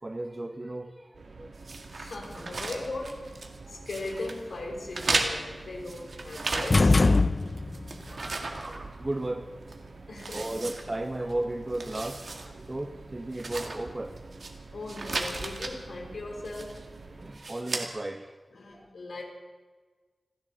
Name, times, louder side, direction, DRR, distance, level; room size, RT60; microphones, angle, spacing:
voice 1, 0.0-1.5 3.6-3.9 8.1-9.5 10.0-14.2 17.1-18.4 18.7-18.9, right 1 dB, 25° right, 0.7 m, -35 dB
sound 1, 1.1-17.4, right 3 dB, 85° right, 2.3 m, -47 dB
sound 2, 1.6-3.6 3.9-4.4 4.9-7.1 7.4-9.3 9.7-9.8 10.2-11.3 11.7-12.5 12.8-12.9 13.3-14.5 14.9-15.7 16.4-16.9 17.3-17.9, right 3 dB, 60° right, 1.8 m, -35 dB
voice 2, 1.9-7.0 10.1-10.5 14.7-16.9 18.5-19.2, left 2 dB, 80° left, 3.2 m, -38 dB
sound 3, 6.7-7.9, left 3 dB, 35° left, 0.4 m, -21 dB
29.0 x 10.5 x 3.9 m
wide cardioid pair, 105°, 0 cm